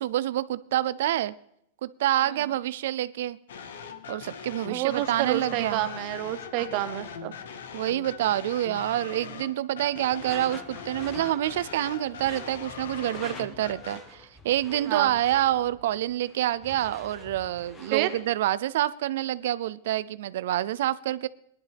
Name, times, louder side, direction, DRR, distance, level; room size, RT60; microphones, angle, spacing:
voice 1, 0.0-1.3 1.8-3.4 4.1-5.9 6.6-6.7 7.7-21.3, right 13 dB, 60° right, 16 dB, 0.4 m, -27 dB
sound 1, 3.5-14.0, left 6 dB, 90° left, 1.4 m, -41 dB
voice 2, 4.7-7.3 14.9-15.2 17.9-18.1, right 14 dB, 35° right, 11 dB, 0.9 m, -29 dB
Door / Screech, 10.1-18.3, left 2 dB, 10° left, 1.2 m, -47 dB
19.5 x 11.5 x 3.4 m, 0.71 s
supercardioid pair, 170°, 0 cm